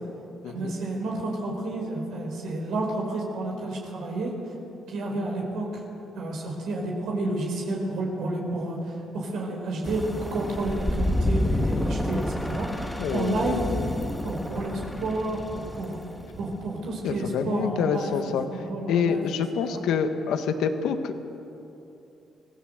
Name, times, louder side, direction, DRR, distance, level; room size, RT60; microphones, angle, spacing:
voice 1, 0.5-4.3 4.9-5.8 6.1-13.7 14.2-16.0 16.3-19.2 19.6-19.8, right 2 dB, 80° right, -1 dB, 4.7 m, -30 dB
sound 1, 9.8-16.8, left 1 dB, 10° left, 1.6 m, -29 dB
voice 2, 13.0-13.9 17.0-18.4 18.9-21.3, left 6 dB, 85° left, 7 dB, 1.7 m, -27 dB
24.5 x 17.0 x 8.1 m, 2.9 s
cardioid pair, 90°, 0 cm